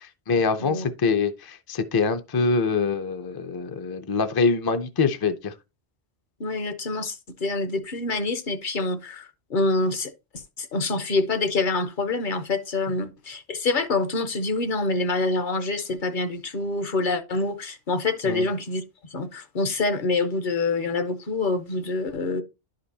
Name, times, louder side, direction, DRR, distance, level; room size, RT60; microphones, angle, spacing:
voice 1, 0.0-5.5 18.2-18.5, left 4 dB, 35° left, 0.4 m, -24 dB
voice 2, 6.4-18.8 19.1-22.4, left 3 dB, 55° left, 0.8 m, -26 dB
11.0 x 5.1 x 2.7 m
omnidirectional pair, 1.1 m